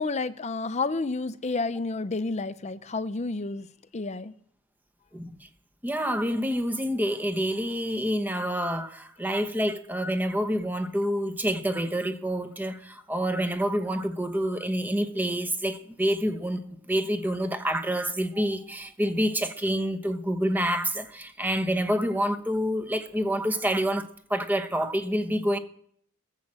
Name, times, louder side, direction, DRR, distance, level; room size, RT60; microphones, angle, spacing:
voice 1, 0.0-3.7 3.9-4.3, left 3 dB, 30° left, 0.6 m, -30 dB
voice 2, 5.1-5.5 5.8-25.6, equal, 10° right, 0.9 m, -27 dB
20.0 x 7.6 x 7.5 m
head